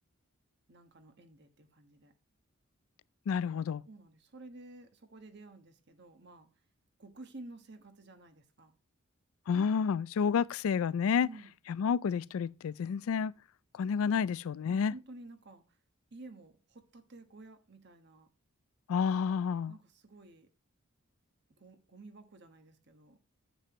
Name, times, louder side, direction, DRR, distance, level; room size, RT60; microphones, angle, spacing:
voice 1, 0.7-2.1 3.9-6.5 7.0-8.7 11.2-11.5 14.7-15.8 16.1-18.3 19.7-20.5 21.5-23.2, right 2 dB, 55° right, 1.2 m, -52 dB
voice 2, 3.3-3.8 9.5-11.3 11.7-13.3 13.8-14.9 18.9-19.7, left 6 dB, 75° left, 0.3 m, -30 dB
9.6 x 7.7 x 3.0 m
head